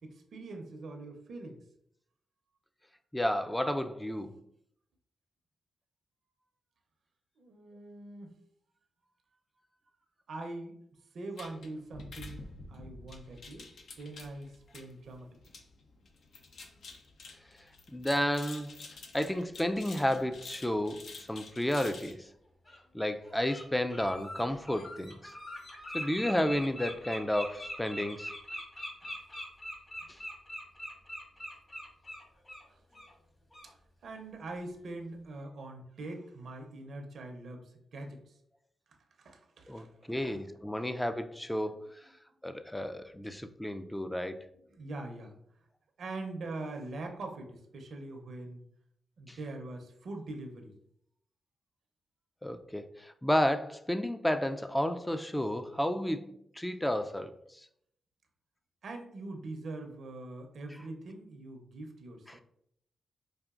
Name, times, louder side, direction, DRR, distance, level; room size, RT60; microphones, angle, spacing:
voice 1, 0.0-1.6 7.4-8.4 10.3-10.8 11.1-13.7 14.0-15.3 30.0-30.1 32.7-32.8 34.0-38.3 39.2-40.4 41.7-41.8 42.3-42.4 44.5-45.3 46.0-48.6 49.2-50.8 58.8-62.4, right 2 dB, 70° right, 0.6 m, -43 dB
voice 2, 3.1-4.3 17.9-18.8 19.1-22.3 22.9-25.3 25.9-28.3 30.1-30.2 39.7-42.1 42.4-44.5 49.3-49.4 52.4-57.7 62.3-62.4, left 1 dB, 10° left, 0.3 m, -32 dB
sound 1, 11.4-22.1, left 3 dB, 70° left, 0.5 m, -49 dB
Bird, 22.6-22.8 23.2-23.6 23.9-32.6 32.9-33.1 33.5-33.7, left 1 dB, 40° left, 1.3 m, -42 dB
4.9 x 2.5 x 2.4 m
cardioid pair, 65°, 0 cm